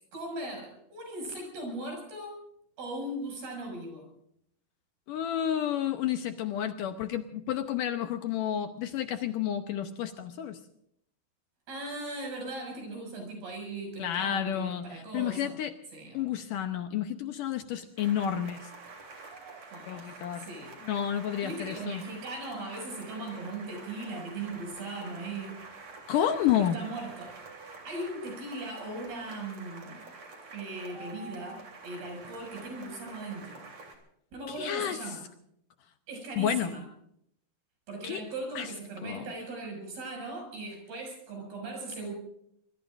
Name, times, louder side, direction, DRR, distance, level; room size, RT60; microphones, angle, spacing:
voice 1, 0.1-2.4 2.8-4.1 11.7-15.6 15.9-16.3 19.7-20.7 21.4-25.6 26.5-27.4 27.8-30.1 30.5-33.7 34.3-35.2 36.1-36.8 37.9-42.1, right 2 dB, 80° right, 2 dB, 8.6 m, -39 dB
voice 2, 5.1-10.6 14.0-15.7 16.1-18.6 19.9-20.5 20.8-22.0 26.1-26.8 34.5-35.0 36.4-36.7 38.0-38.2 38.6-38.7 39.0-39.3, left 10 dB, 75° left, 7 dB, 2.1 m, -30 dB
sound 1, 18.0-33.9, right 3 dB, 45° right, 4.1 m, -47 dB
25.0 x 22.5 x 2.6 m, 0.73 s
omnidirectional pair, 4.5 m